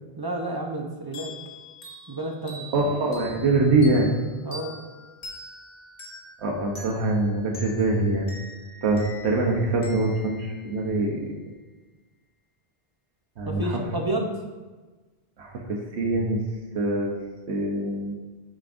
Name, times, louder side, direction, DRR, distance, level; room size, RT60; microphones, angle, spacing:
voice 1, 0.2-1.3 2.1-2.7 4.4-4.7 13.4-14.3, right 1 dB, 25° right, 1 dB, 0.6 m, -30 dB
sound 1, 1.1-11.4, left 1 dB, 60° left, 1.4 m, -44 dB
voice 2, 2.7-4.1 6.4-8.3 8.8-11.3 13.4-13.8 15.4-16.4 16.7-17.1 17.5-18.2, right 2 dB, 80° right, 0 dB, 1.2 m, -24 dB
9.1 x 5.2 x 2.5 m, 1.3 s
omnidirectional pair, 1.1 m